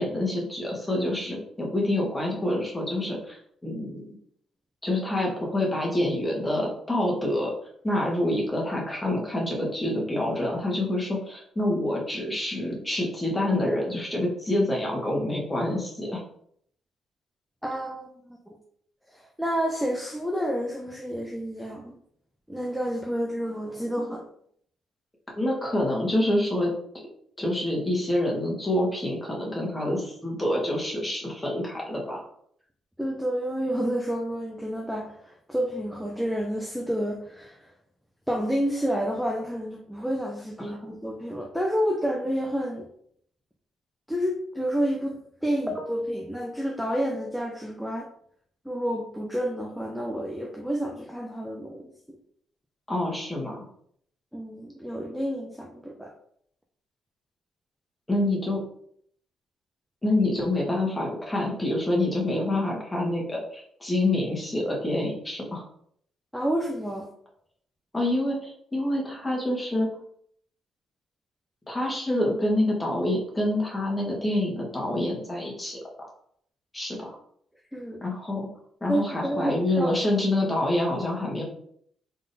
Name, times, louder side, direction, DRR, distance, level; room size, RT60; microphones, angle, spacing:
voice 1, 0.0-4.2 4.8-7.5 7.8-16.2 25.3-26.7 27.4-32.3 52.9-53.6 58.1-58.6 60.0-65.6 67.9-69.9 71.7-76.1 76.7-77.2 78.0-78.5 78.8-81.4, left 1 dB, 15° left, -2 dB, 1.4 m, -27 dB
voice 2, 17.6-18.6 19.1-22.0 22.5-24.3 33.0-37.7 38.3-42.9 44.1-48.1 48.6-52.2 54.3-56.1 66.3-67.1 77.7-78.0 78.9-80.0, equal, ahead, 0 dB, 0.5 m, -29 dB
3.7 x 3.7 x 2.7 m, 0.65 s
cardioid pair, 90°, 0 cm